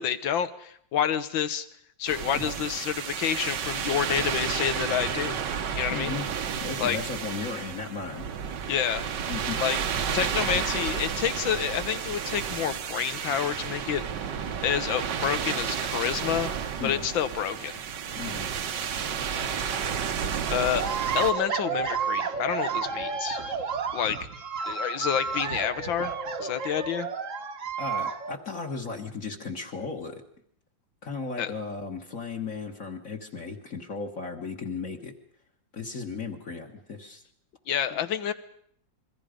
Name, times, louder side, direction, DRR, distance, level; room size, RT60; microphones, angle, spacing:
voice 1, 0.0-1.7 2.0-5.4 5.8-6.2 6.8-7.0 8.7-9.0 9.6-9.8 10.1-14.0 14.6-16.5 16.8-17.8 20.5-20.9 21.1-23.4 23.9-24.2 24.7-26.1 26.4-27.1 31.4-31.5 37.7-38.3, left 9 dB, 90° left, 12 dB, 1.9 m, -28 dB
sound 1, 2.1-21.3, right 7 dB, 70° right, 1.7 m, -31 dB
voice 2, 5.9-6.3 6.6-8.2 9.3-9.6 16.8-17.0 18.2-18.5 27.8-30.2 31.0-35.1 35.7-37.2 37.9-38.0, left 4 dB, 45° left, 1 dB, 2.0 m, -35 dB
sound 2, 20.8-28.4, right 5 dB, 45° right, 1.4 m, -31 dB
27.5 x 22.5 x 5.2 m, 0.66 s
omnidirectional pair, 2.0 m